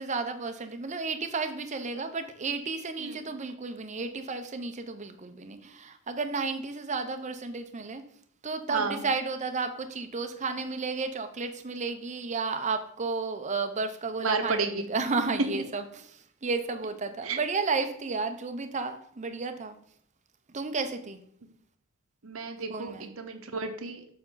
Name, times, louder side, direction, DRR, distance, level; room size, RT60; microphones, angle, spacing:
voice 1, 0.0-8.0 8.4-19.8 20.5-21.2 22.7-23.1, right 4 dB, 35° right, 8 dB, 0.8 m, -32 dB
voice 2, 8.7-9.0 14.2-14.9 17.2-17.4 22.2-24.0, right 4 dB, 75° right, 6 dB, 1.1 m, -32 dB
7.2 x 6.4 x 3.9 m, 0.65 s
head